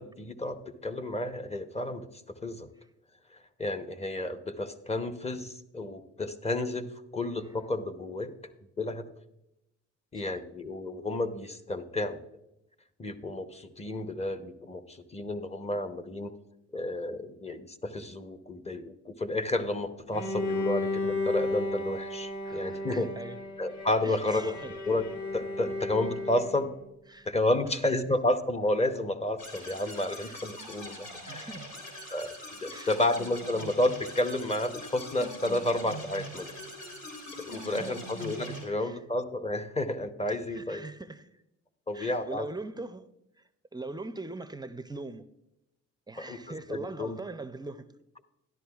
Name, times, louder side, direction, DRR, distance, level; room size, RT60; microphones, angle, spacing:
voice 1, 0.0-2.7 3.3-8.3 8.8-9.1 10.1-12.2 13.0-16.3 16.7-23.1 23.6-24.5 24.8-25.0 25.3-26.7 27.3-31.5 32.1-32.3 32.6-36.5 37.4-40.8 41.9-42.5 46.2-47.2, left 1 dB, 20° left, 0.8 m, -31 dB
Bowed string instrument, 20.1-26.9, left 2 dB, 70° left, 2.6 m, -34 dB
voice 2, 22.4-23.4 24.0-24.8 27.1-27.3 27.5-27.7 30.2-30.4 31.2-31.7 32.7-33.0 37.5-37.9 38.7-39.0 40.5-41.4 41.9-43.1 43.4-43.5 43.7-45.2 46.1-47.8, right 2 dB, 15° right, 0.4 m, -41 dB
sound 1, 29.4-38.6, equal, 85° left, 3.6 m, -43 dB
13.0 x 11.0 x 2.3 m
cardioid pair, 90°, 30 cm